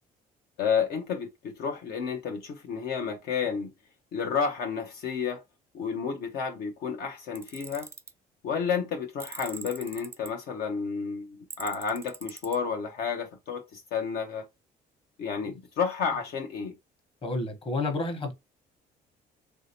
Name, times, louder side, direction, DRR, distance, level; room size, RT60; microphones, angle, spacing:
voice 1, 0.6-3.7 4.1-5.4 5.7-7.9 8.4-14.5 15.2-16.7, left 6 dB, 70° left, 0.6 m, -31 dB
Tools, 7.4-8.1 9.2-10.3 11.5-12.6, right 4 dB, 15° right, 0.3 m, -42 dB
voice 2, 17.2-18.3, left 2 dB, 35° left, 1.1 m, -30 dB
3.2 x 2.7 x 2.8 m
cardioid pair, 110°, 17 cm